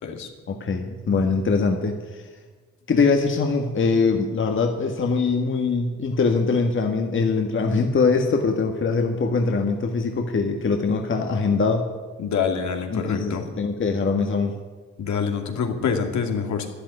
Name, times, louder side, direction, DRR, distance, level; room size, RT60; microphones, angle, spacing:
voice 1, 0.5-2.2 2.9-11.8 12.9-14.6, left 4 dB, 40° left, 4 dB, 1.8 m, -22 dB
voice 2, 12.2-13.4 15.0-16.7, left 6 dB, 70° left, 4 dB, 2.6 m, -26 dB
13.0 x 11.0 x 9.7 m, 1.4 s
cardioid pair, 90°, 30 cm